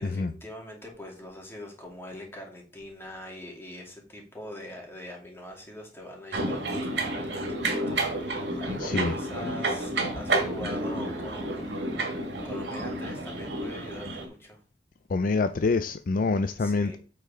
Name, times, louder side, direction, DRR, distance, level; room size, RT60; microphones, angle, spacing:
voice 1, 0.0-11.9 12.4-14.6 16.6-17.0, left 1 dB, 15° left, 2.5 m, -43 dB
sound 1, 6.3-14.3, right 2 dB, 80° right, 2.1 m, -30 dB
voice 2, 8.8-9.1 15.1-17.0, left 3 dB, 50° left, 0.4 m, -26 dB
8.2 x 4.7 x 4.8 m
head